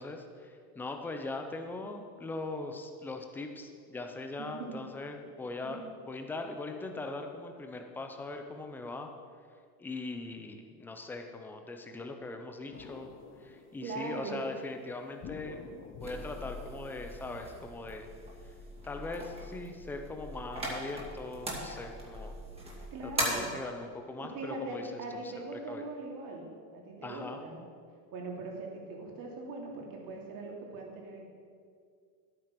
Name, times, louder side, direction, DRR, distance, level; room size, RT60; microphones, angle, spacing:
voice 1, 0.0-5.8 6.1-9.1 9.8-13.1 13.4-15.6 16.0-18.1 18.8-22.4 23.0-24.8 25.5-25.8 27.0-27.4, left 2 dB, 5° left, 5 dB, 0.3 m, -40 dB
voice 2, 4.4-4.8 5.6-5.8 13.8-14.4 22.9-23.5 24.2-27.6 28.1-31.3, right 3 dB, 40° right, 0 dB, 2.9 m, -41 dB
sound 1, 12.7-14.2 15.2-17.6, left 5 dB, 25° left, 0.8 m, -49 dB
sound 2, 16.0-23.3, right 1 dB, 10° right, 2.4 m, -40 dB
11.0 x 8.8 x 5.9 m, 2.2 s
supercardioid pair, 130°, 50 cm